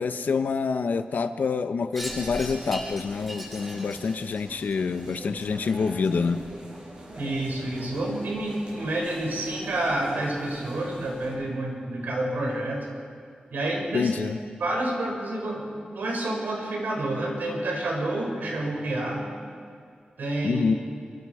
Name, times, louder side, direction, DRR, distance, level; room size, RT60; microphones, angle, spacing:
voice 1, 0.0-6.4 13.9-14.4 20.4-20.7, left 5 dB, 65° left, 9 dB, 1.0 m, -27 dB
Wind chime, 1.9-6.6, equal, 5° right, 7.8 m, -41 dB
sound 1, 2.0-11.3, right 1 dB, 35° right, 7.7 m, -42 dB
voice 2, 7.2-12.9 13.5-14.1 14.6-19.2 20.2-20.6, right 1 dB, 85° right, -1 dB, 6.5 m, -29 dB
25.5 x 23.5 x 5.0 m, 2.2 s
wide cardioid pair, 155°, 3 cm